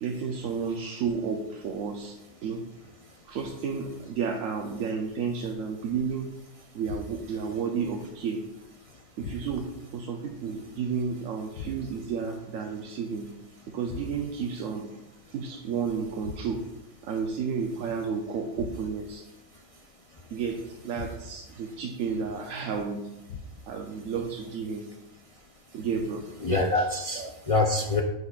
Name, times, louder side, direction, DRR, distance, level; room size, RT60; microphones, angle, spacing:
voice 1, 0.0-2.6 3.3-6.3 6.7-8.5 9.2-13.3 13.7-14.9 15.3-16.7 17.0-19.2 20.3-23.1 23.7-24.9 25.7-26.3 26.7-26.8 27.1-27.3, right 6 dB, 75° right, 2 dB, 1.0 m, -32 dB
sound 1, 6.8-7.5 9.2-9.8 11.5-12.2 13.9-14.5 16.2-16.8 18.5-19.2 20.9-21.6 23.3-23.9, left 4 dB, 70° left, 0.9 m, -42 dB
voice 2, 26.4-28.0, left 2 dB, 55° left, 2 dB, 0.3 m, -27 dB
9.6 x 6.6 x 2.4 m, 0.97 s
omnidirectional pair, 1.4 m